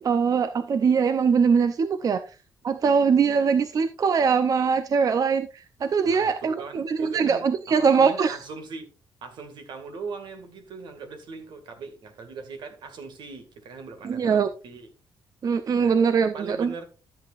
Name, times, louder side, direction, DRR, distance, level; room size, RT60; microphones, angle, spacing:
voice 1, 0.0-2.4 2.6-8.4 14.0-14.5 15.4-16.7, right 6 dB, 50° right, 0.6 m, -22 dB
voice 2, 6.0-8.9 9.2-14.9 15.7-16.0 16.3-16.9, right 4 dB, 75° right, 2.0 m, -40 dB
13.0 x 7.8 x 2.5 m
cardioid pair, 95°, 8 cm